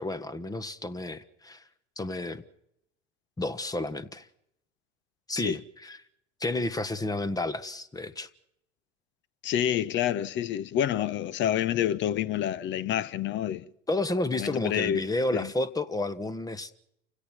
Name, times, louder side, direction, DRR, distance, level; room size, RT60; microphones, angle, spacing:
voice 1, 0.0-1.6 2.0-2.4 3.4-4.3 5.3-6.0 6.4-8.3 13.9-16.7, left 2 dB, 10° left, 1.2 m, -31 dB
voice 2, 9.4-13.7 14.3-15.0 15.3-15.5, left 10 dB, 30° left, 0.9 m, -28 dB
30.0 x 17.0 x 6.3 m
figure-of-eight pair, 80°, 37 cm